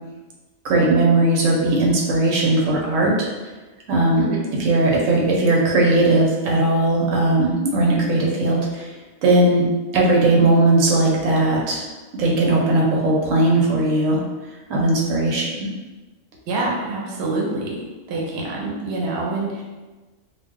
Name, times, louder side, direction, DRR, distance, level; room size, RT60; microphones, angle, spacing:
voice 1, 0.6-3.3 3.9-4.3 4.6-8.9 9.2-11.9 12.1-14.2 14.7-15.7, right 2 dB, 85° right, -3 dB, 1.0 m, -18 dB
voice 2, 16.5-17.8 18.1-19.6, right 2 dB, 65° right, -3 dB, 0.9 m, -26 dB
2.3 x 2.0 x 3.5 m, 1.2 s
omnidirectional pair, 1.3 m